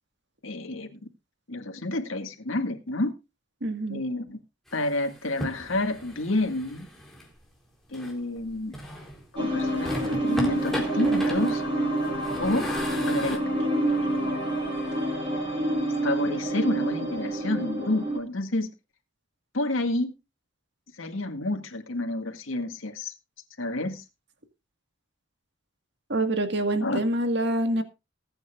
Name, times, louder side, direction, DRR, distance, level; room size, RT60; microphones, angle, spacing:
voice 1, 0.4-1.0 1.5-3.1 3.9-4.4 4.7-6.9 7.9-8.7 9.3-11.6 12.4-12.7 13.1-13.7 14.0-14.2 15.3-15.4 16.0-18.7 19.5-20.1 21.0-23.1 23.6-24.0 26.8-27.0, left 2 dB, 85° left, 2.0 m, -29 dB
voice 2, 3.6-4.0 26.1-27.8, right 1 dB, 60° right, 1.8 m, -26 dB
sound 1, 4.7-7.3 7.9-9.2 9.6-13.4, equal, ahead, 3.9 m, -37 dB
Weird Dimension, 9.4-18.2, right 1 dB, 25° right, 7.1 m, -27 dB
21.0 x 9.3 x 2.5 m
head